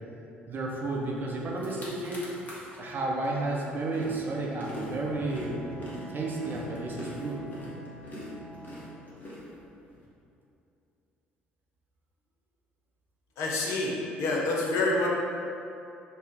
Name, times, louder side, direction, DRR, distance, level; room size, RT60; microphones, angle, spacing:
voice 1, 0.5-2.3 2.8-5.6 6.1-7.4, right 2 dB, 35° right, -3 dB, 0.6 m, -32 dB
sound 1, 1.2-1.3 1.5-2.8 3.2-10.0, left 1 dB, 30° left, 1.0 m, -43 dB
Bowed string instrument, 4.9-9.2, right 4 dB, 10° left, 1.1 m, -46 dB
voice 2, 13.4-15.1, left 2 dB, 60° left, -3 dB, 0.6 m, -27 dB
3.4 x 2.2 x 3.9 m, 2.7 s
figure-of-eight pair, 55°, 6 cm